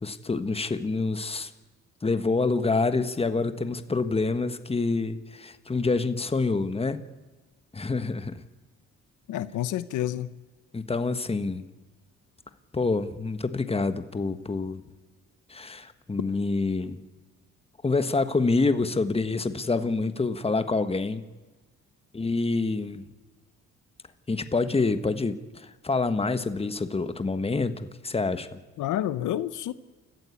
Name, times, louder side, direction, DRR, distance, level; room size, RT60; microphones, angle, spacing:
voice 1, 0.0-1.5 2.0-7.0 7.7-8.4 10.7-11.6 12.7-14.8 15.5-17.0 17.8-21.2 22.1-23.0 24.3-28.5, left 3 dB, 20° left, 10 dB, 1.4 m, -27 dB
voice 2, 9.3-10.3 28.8-29.7, left 12 dB, 80° left, 14 dB, 0.9 m, -29 dB
29.0 x 14.5 x 8.6 m, 1.2 s
cardioid pair, 90°, 30 cm